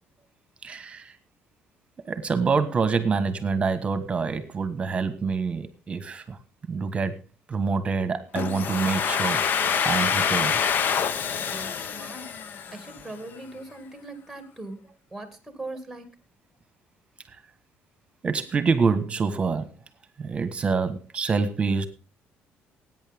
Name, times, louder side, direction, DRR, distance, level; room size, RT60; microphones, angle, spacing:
voice 1, 0.6-1.1 2.0-6.4 6.7-7.2 7.5-10.6 18.2-19.7 20.2-21.9, right 5 dB, 25° right, 11 dB, 1.4 m, -26 dB
Domestic sounds home sounds, 8.3-13.1, left 7 dB, 45° left, 0.7 m, -26 dB
voice 2, 11.3-12.3 12.7-14.8 15.1-16.1, right 2 dB, ahead, 8 dB, 2.2 m, -40 dB
20.0 x 9.3 x 3.6 m, 0.32 s
cardioid pair, 145°, 4 cm